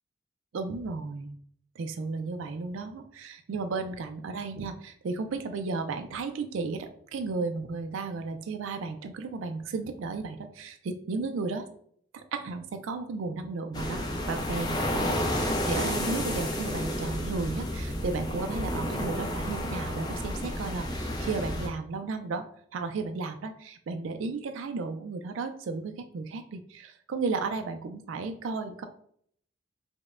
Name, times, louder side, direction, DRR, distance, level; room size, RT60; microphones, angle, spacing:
voice 1, 0.5-1.4 1.8-11.7 12.1-22.5 22.7-28.9, right 4 dB, 80° right, 7 dB, 0.4 m, -34 dB
sound 1, 13.7-21.7, left 1 dB, 20° left, 0.4 m, -31 dB
5.1 x 2.1 x 2.4 m, 0.63 s
head